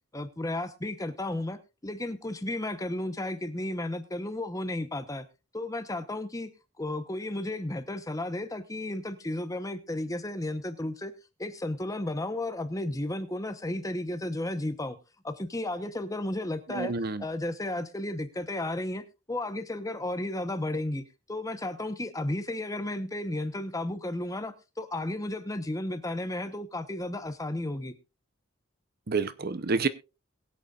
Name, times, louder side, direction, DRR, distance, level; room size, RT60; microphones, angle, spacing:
voice 1, 0.1-5.3 5.5-6.5 6.8-11.1 11.4-15.0 15.2-16.9 17.2-21.0 21.3-27.9, left 1 dB, 15° left, 0.9 m, -33 dB
voice 2, 16.7-17.2 29.1-29.9, right 4 dB, 50° right, 0.7 m, -28 dB
22.0 x 8.2 x 2.4 m
head